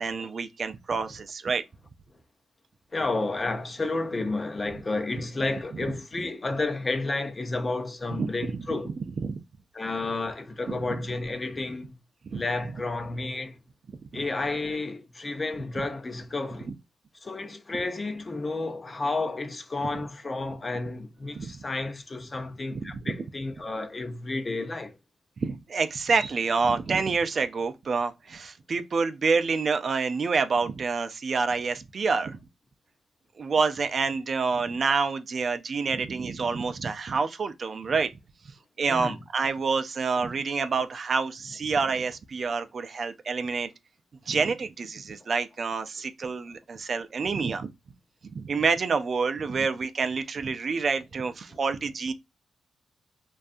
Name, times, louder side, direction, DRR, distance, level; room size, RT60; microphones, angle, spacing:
voice 1, 0.0-1.6 8.1-8.7 9.2-9.4 10.7-11.0 12.2-12.4 21.3-21.5 22.7-23.1 25.4-32.4 33.4-38.1 38.4-43.7 44.3-47.7 48.2-52.1, right 4 dB, 55° right, 0.3 m, -28 dB
voice 2, 2.9-8.9 9.7-11.9 12.3-13.6 14.1-16.7 17.2-24.9 38.9-39.2, left 2 dB, 35° left, 0.5 m, -31 dB
2.5 x 2.3 x 2.4 m
cardioid pair, 60°, 0 cm